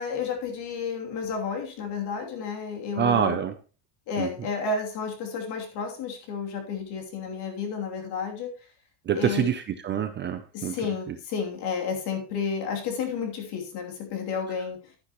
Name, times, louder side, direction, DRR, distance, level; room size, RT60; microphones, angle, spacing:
voice 1, 0.0-3.4 4.1-8.5 9.1-9.5 10.5-14.8, left 5 dB, 55° left, 1 dB, 3.0 m, -31 dB
voice 2, 3.0-3.5 4.2-4.3 9.1-10.7, right 8 dB, 25° right, 8 dB, 0.4 m, -26 dB
11.5 x 9.9 x 3.0 m, 0.35 s
cardioid pair, 170°, 48 cm